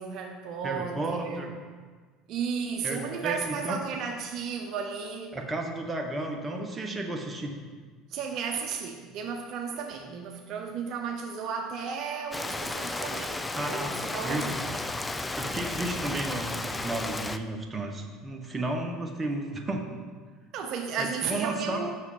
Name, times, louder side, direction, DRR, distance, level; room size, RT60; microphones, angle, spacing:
voice 1, 0.0-1.5 2.3-5.4 8.1-14.8 20.5-21.9, right 6 dB, 55° right, 3 dB, 0.7 m, -34 dB
voice 2, 0.6-1.5 2.8-3.8 5.3-7.6 13.5-13.9 14.2-14.5 15.4-20.0 21.0-21.9, right 2 dB, 20° right, 2 dB, 1.2 m, -33 dB
Rain, 12.3-17.4, left 2 dB, 15° left, 0.5 m, -33 dB
6.4 x 6.1 x 5.6 m, 1.5 s
supercardioid pair, 90°, 0 cm